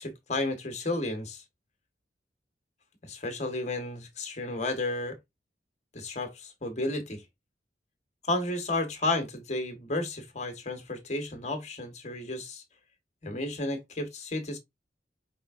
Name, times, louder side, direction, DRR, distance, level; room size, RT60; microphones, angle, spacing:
voice 1, 0.0-1.4 3.0-5.2 5.9-7.2 8.2-12.6 13.2-14.6, left 2 dB, 40° left, 1.2 m, -32 dB
5.2 x 3.4 x 2.4 m
head